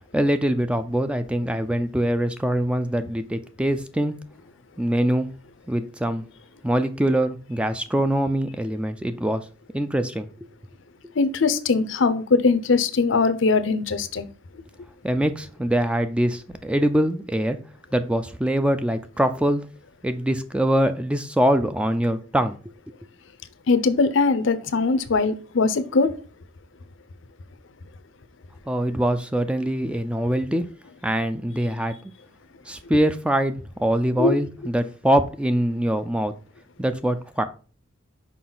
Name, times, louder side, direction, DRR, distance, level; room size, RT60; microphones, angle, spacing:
voice 1, 0.1-4.1 4.8-5.3 5.7-6.2 6.6-9.5 9.7-10.3 15.0-17.6 17.9-19.7 20.0-22.6 28.7-30.7 31.0-32.1 32.7-36.3 36.8-37.5, right 1 dB, 5° right, 0.3 m, -23 dB
voice 2, 11.2-14.3 23.7-26.1 34.2-34.4, left 4 dB, 65° left, 0.6 m, -21 dB
6.0 x 4.6 x 3.8 m
head